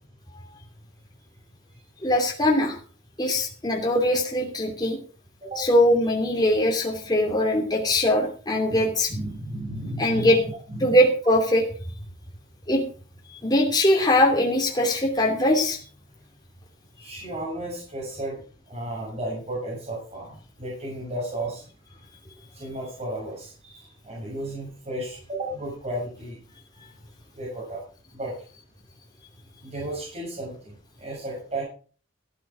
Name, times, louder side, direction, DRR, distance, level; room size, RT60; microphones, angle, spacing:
voice 1, 2.0-2.8 3.2-5.0 5.6-9.1 10.0-10.4 10.8-11.7 12.7-12.8 13.4-15.8, left 1 dB, 20° left, 0 dB, 2.7 m, -21 dB
voice 2, 8.7-11.0 17.0-18.4 18.7-21.6 22.5-26.4 27.3-27.8 28.1-28.4 29.6-31.6, right 1 dB, 35° right, -6 dB, 7.1 m, -34 dB
14.0 x 11.5 x 5.0 m, 0.39 s
head